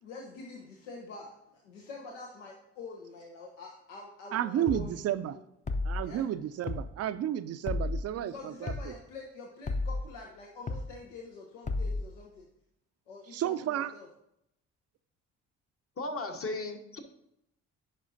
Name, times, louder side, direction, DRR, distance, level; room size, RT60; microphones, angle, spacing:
voice 1, 0.0-5.1 5.3-5.4 6.0-6.2 8.2-12.5 13.1-14.1, left 3 dB, 85° left, 0 dB, 0.8 m, -46 dB
voice 2, 4.3-5.3 5.8-8.9 13.3-13.9, right 11 dB, 45° right, 13 dB, 0.5 m, -32 dB
sound 1, 4.7-4.9 5.7-6.0 6.7-6.9 7.7-8.0 8.7-8.9 9.7-10.0 10.7-10.9 11.7-12.0, left 3 dB, 20° left, 0.6 m, -32 dB
voice 3, 16.0-17.0, left 2 dB, 40° left, 5 dB, 1.1 m, -35 dB
10.5 x 5.0 x 2.6 m, 0.80 s
hypercardioid pair, 50°, 36 cm